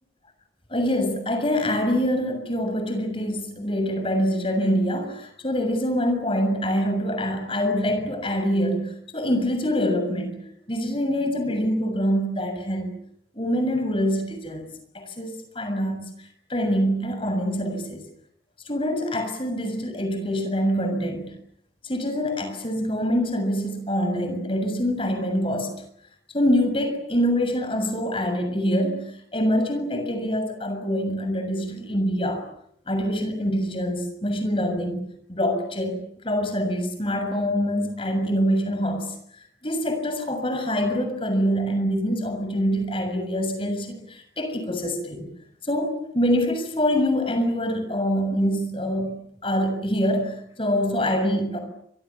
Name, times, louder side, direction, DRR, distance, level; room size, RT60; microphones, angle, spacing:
voice 1, 0.7-12.9 13.3-14.7 14.9-18.0 18.7-21.3 21.8-25.8 26.3-32.4 32.9-35.0 35.3-45.3 45.6-51.6, equal, 30° left, 7 dB, 6.9 m, -25 dB
29.5 x 25.5 x 7.2 m, 0.70 s
head